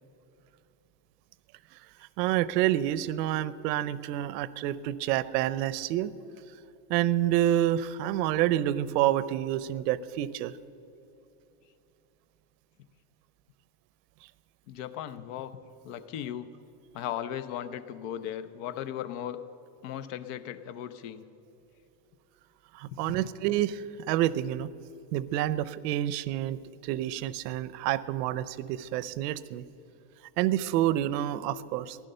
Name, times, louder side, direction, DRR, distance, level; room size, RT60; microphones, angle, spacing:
voice 1, 2.2-6.1 6.9-10.5 22.7-24.7 25.1-26.6 26.8-29.6 30.4-32.0, right 13 dB, 85° right, 17 dB, 0.7 m, -28 dB
voice 2, 14.7-15.5 15.8-16.5 16.9-19.4 19.8-21.2 22.9-23.2, left 10 dB, 55° left, 13 dB, 0.8 m, -37 dB
15.5 x 11.5 x 6.7 m, 2.9 s
cardioid pair, 170°, 47 cm